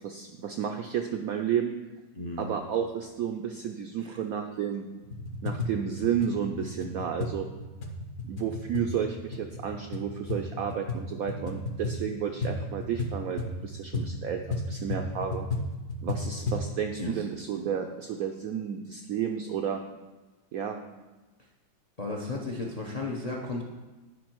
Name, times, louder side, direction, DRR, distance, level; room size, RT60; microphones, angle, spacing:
voice 1, 0.0-1.7 2.4-4.9 5.4-7.5 8.2-15.5 16.0-19.8 20.5-20.8, right 8 dB, 80° right, 5 dB, 0.7 m, -32 dB
voice 2, 2.1-2.5 4.0-4.2 17.0-17.2 22.0-23.6, left 2 dB, 75° left, -1 dB, 0.3 m, -34 dB
sound 1, 5.0-16.7, left 2 dB, 55° left, 1.1 m, -34 dB
9.3 x 5.3 x 4.5 m, 1.2 s
omnidirectional pair, 2.0 m